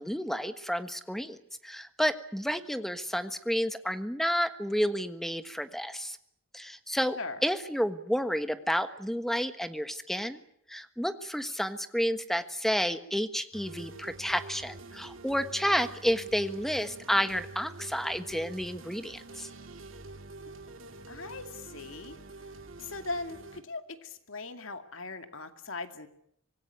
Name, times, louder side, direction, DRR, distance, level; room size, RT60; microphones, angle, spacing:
voice 1, 0.0-1.4 1.6-6.2 6.5-10.4 10.7-19.5, equal, ahead, 9 dB, 1.4 m, -30 dB
sound 1, 13.5-23.6, right 2 dB, 70° right, 2.5 m, -46 dB
voice 2, 21.1-22.2 22.8-26.1, left 3 dB, 70° left, 7 dB, 2.3 m, -39 dB
25.5 x 19.0 x 9.4 m, 0.71 s
head